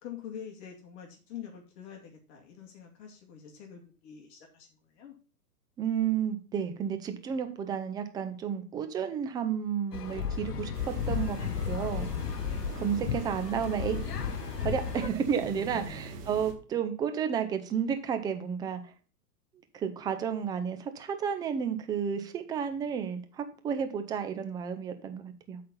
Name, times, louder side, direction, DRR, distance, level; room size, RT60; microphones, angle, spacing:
voice 1, 0.0-5.2 12.1-13.0 15.5-16.1, left 8 dB, 45° left, 1 dB, 2.3 m, -46 dB
voice 2, 5.8-12.1 12.8-14.0 14.6-18.8 19.7-25.6, right 8 dB, 10° right, 8 dB, 0.4 m, -32 dB
sound 1, 9.9-15.1, left 7 dB, 90° left, 1.0 m, -34 dB
sound 2, 10.7-16.5, right 1 dB, 80° right, 2.4 m, -43 dB
7.9 x 4.2 x 6.8 m, 0.37 s
hypercardioid pair, 125°, 46 cm